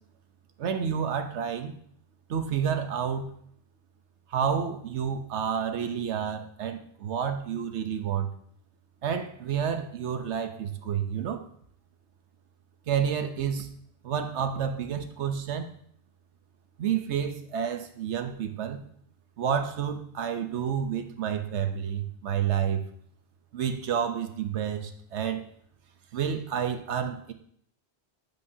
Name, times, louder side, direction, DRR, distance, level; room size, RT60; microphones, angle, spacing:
voice 1, 0.6-1.7 2.3-3.3 4.3-8.3 9.0-11.4 12.9-13.7 14.0-15.7 16.8-18.8 19.4-22.8 23.5-25.4 26.1-27.3, right 8 dB, 85° right, 8 dB, 1.1 m, -29 dB
10.5 x 8.5 x 2.7 m, 0.65 s
omnidirectional pair, 1.1 m